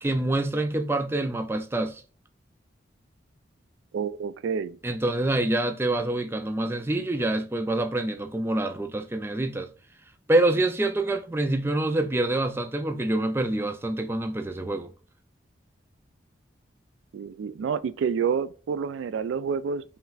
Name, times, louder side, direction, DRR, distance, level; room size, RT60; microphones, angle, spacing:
voice 1, 0.0-2.0 4.8-9.7 10.3-14.9, right 2 dB, 10° right, 0.3 m, -26 dB
voice 2, 3.9-4.8 17.1-19.8, right 6 dB, 90° right, 0.3 m, -28 dB
5.6 x 3.2 x 2.4 m
head